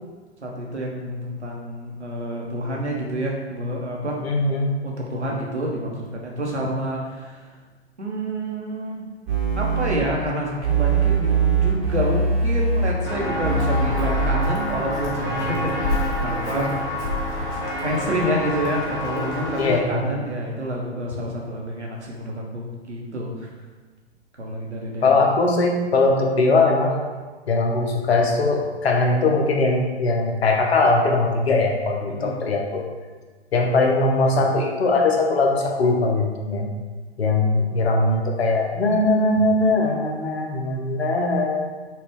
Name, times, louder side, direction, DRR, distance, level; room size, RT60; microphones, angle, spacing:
voice 1, 0.4-4.2 4.8-7.4 8.0-9.0 9.5-16.8 17.8-23.5 24.4-25.2 32.1-32.4, right 1 dB, 85° right, -2 dB, 1.0 m, -28 dB
voice 2, 4.2-4.7 6.6-6.7 19.6-20.2 25.0-27.0 27.5-32.9 33.5-36.7 37.2-41.7, left 2 dB, 65° left, 1 dB, 0.8 m, -20 dB
sound 1, 9.3-10.0 10.6-12.9 13.4-14.3, right 4 dB, 20° right, 1.1 m, -21 dB
Walk footsteps, 13.1-19.8, left 1 dB, 15° left, 0.4 m, -27 dB
4.2 x 2.4 x 3.5 m, 1.4 s
figure-of-eight pair, 115°, 34 cm